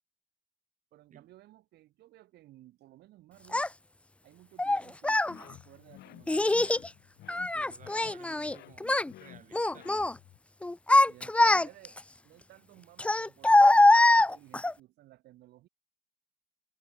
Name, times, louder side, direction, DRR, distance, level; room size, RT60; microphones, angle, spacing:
voice 1, 0.9-3.7 4.2-6.7 11.1-12.0 12.2-15.7, right 15 dB, 75° right, 7.3 m, -57 dB
Child speech kid speaking, 3.5-3.7 4.6-5.3 6.3-6.9 7.3-8.5 8.8-9.1 9.5-10.1 10.6-12.0 13.0-14.7, left 2 dB, 5° left, 0.5 m, -23 dB
sound 1, 5.3-10.4, left 15 dB, 75° left, 6.9 m, -53 dB
voice 2, 7.5-10.1, right 9 dB, 50° right, 7.5 m, -55 dB
cardioid pair, 110°, 17 cm